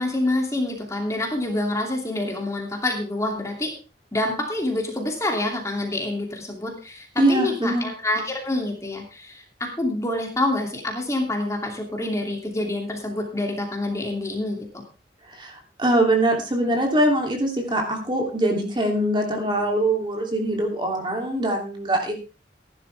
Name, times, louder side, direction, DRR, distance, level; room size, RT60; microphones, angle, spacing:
voice 1, 0.0-3.7 4.1-14.8, left 2 dB, 15° left, 1 dB, 2.7 m, -27 dB
voice 2, 7.2-7.8 15.4-22.1, right 1 dB, 25° right, 2 dB, 3.0 m, -23 dB
15.0 x 11.5 x 3.5 m, 0.33 s
head